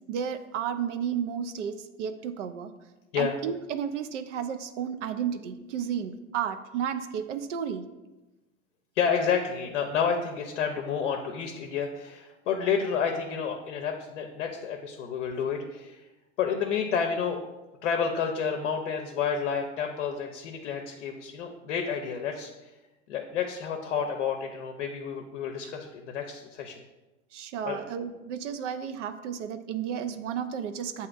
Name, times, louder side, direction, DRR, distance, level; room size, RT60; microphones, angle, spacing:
voice 1, 0.1-2.7 3.2-7.9 27.3-31.1, right 8 dB, 80° right, 8 dB, 0.5 m, -32 dB
voice 2, 9.0-16.0 16.4-17.4 17.8-22.7 23.1-26.8 27.6-27.8, left 6 dB, 75° left, 4 dB, 0.6 m, -30 dB
7.6 x 2.7 x 2.4 m, 1.1 s
hypercardioid pair, 85°, 36 cm